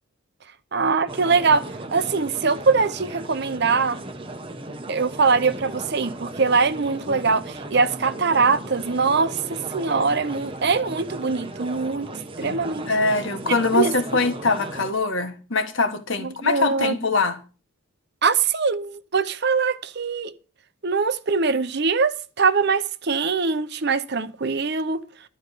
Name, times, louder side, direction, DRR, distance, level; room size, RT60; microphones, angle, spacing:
voice 1, 0.7-4.0 4.9-12.1 12.4-12.9 13.7-13.9 16.2-17.0 18.2-20.3 20.8-25.0, right 4 dB, 50° right, 0.7 m, -22 dB
sound 1, 1.1-14.9, right 2 dB, 25° right, 0.9 m, -36 dB
voice 2, 12.9-17.4, left 3 dB, 60° left, 1.5 m, -23 dB
12.0 x 5.2 x 8.3 m
head